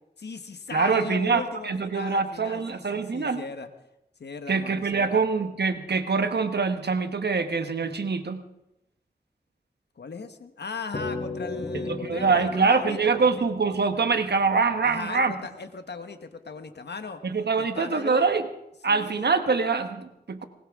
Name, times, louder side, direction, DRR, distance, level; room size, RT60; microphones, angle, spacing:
voice 1, 0.2-3.7 4.2-5.2 10.0-13.4 14.8-17.2 17.6-18.3 18.9-19.3, left 4 dB, 80° left, 8 dB, 1.3 m, -38 dB
voice 2, 0.7-3.4 4.5-8.4 11.9-15.3 17.2-18.4 18.8-20.4, right 4 dB, 75° right, 9 dB, 1.2 m, -24 dB
sound 1, 10.9-15.6, left 3 dB, 50° left, 6.1 m, -37 dB
20.5 x 19.5 x 3.7 m, 0.86 s
cardioid pair, 50°, 17 cm